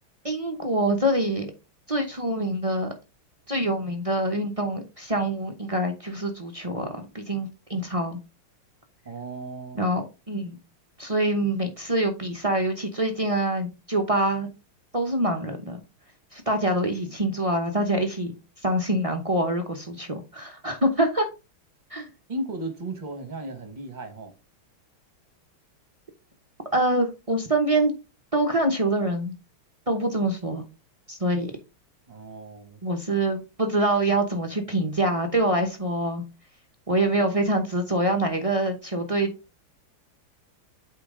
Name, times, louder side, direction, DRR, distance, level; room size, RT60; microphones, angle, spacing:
voice 1, 0.2-1.5 1.9-2.9 3.5-8.2 9.8-10.6 11.0-14.5 14.9-15.8 16.3-18.3 18.6-21.3 21.9-22.1 26.7-27.9 28.3-29.3 29.9-30.6 31.1-31.5 32.8-36.2 36.9-39.3, right 1 dB, 55° right, 0.4 m, -25 dB
voice 2, 9.0-9.8 22.3-24.3 32.1-32.8, right 2 dB, 25° right, 1.4 m, -35 dB
8.6 x 4.5 x 3.7 m
omnidirectional pair, 2.3 m